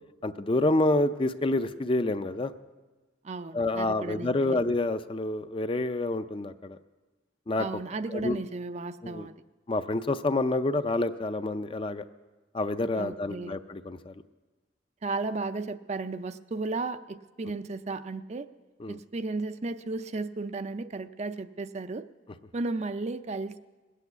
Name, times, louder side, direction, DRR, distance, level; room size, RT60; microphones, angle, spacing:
voice 1, 0.2-2.5 3.5-6.8 7.5-7.7 8.1-8.4 9.0-9.3 9.7-12.0 12.5-14.1 18.8-19.0, left 2 dB, 30° left, 11 dB, 0.5 m, -28 dB
voice 2, 3.2-4.6 7.6-9.3 13.0-13.5 15.0-18.5 18.9-22.0 22.5-23.6, right 3 dB, 40° right, 11 dB, 0.5 m, -34 dB
20.0 x 8.3 x 8.1 m, 1.3 s
head